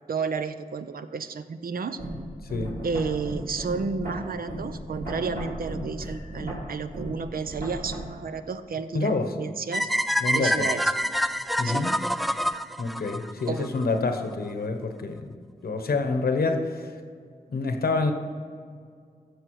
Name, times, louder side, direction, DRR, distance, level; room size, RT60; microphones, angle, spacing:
voice 1, 0.1-2.0 2.8-9.9 10.3-10.8 11.6-11.9 13.5-13.7, right 5 dB, 70° right, 11 dB, 0.6 m, -31 dB
sound 1, 2.0-8.0, right 1 dB, 85° right, 3.2 m, -35 dB
voice 2, 8.9-9.4 10.2-10.7 11.6-11.9 12.8-15.4 15.6-16.9 17.5-18.1, left 3 dB, 80° left, 7 dB, 1.0 m, -27 dB
sound 2, 9.7-13.8, equal, ahead, 0.3 m, -26 dB
15.0 x 6.6 x 4.7 m, 2.1 s
wide cardioid pair, 65°, 15 cm